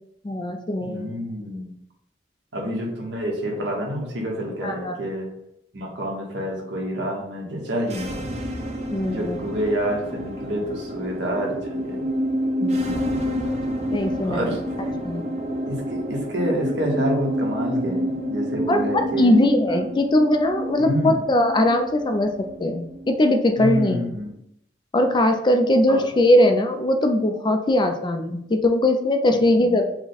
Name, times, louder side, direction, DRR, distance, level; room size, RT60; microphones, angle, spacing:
voice 1, 0.2-1.1 4.6-5.0 8.9-9.4 12.6-13.0 13.9-14.5 15.0-15.2 18.7-22.3 22.6-24.1 24.9-29.8, left 1 dB, 25° left, 5 dB, 0.4 m, -20 dB
voice 2, 0.8-1.7 2.5-5.3 5.7-8.3 9.0-12.1 14.2-14.9 15.7-19.4 19.7-19.9 20.8-21.2 23.6-24.3 25.9-26.0 29.3-29.8, equal, 80° right, -1 dB, 1.1 m, -28 dB
sound 1, 7.9-23.3, equal, 40° right, 0.7 m, -29 dB
4.8 x 2.2 x 4.0 m, 0.77 s
head